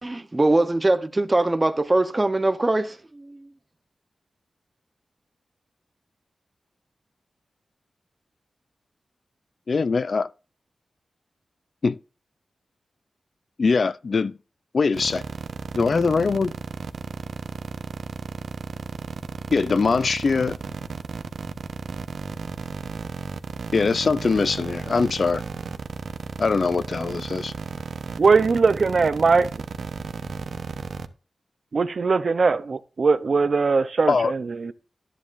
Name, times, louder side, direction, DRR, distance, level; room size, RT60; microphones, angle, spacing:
voice 1, 0.0-3.4, right 2 dB, 20° right, 0.8 m, -22 dB
voice 2, 9.7-10.3 11.8-12.0 13.6-14.4 14.7-15.2 15.7-16.5 19.5-20.6 23.7-25.4 26.4-27.5 34.1-34.3, left 4 dB, 50° left, 0.4 m, -22 dB
sound 1, 14.9-31.1, right 5 dB, 75° right, 0.9 m, -33 dB
voice 3, 28.2-29.5 31.7-34.7, right 4 dB, 50° right, 0.6 m, -20 dB
13.0 x 10.0 x 2.5 m
wide cardioid pair, 150°, 0 cm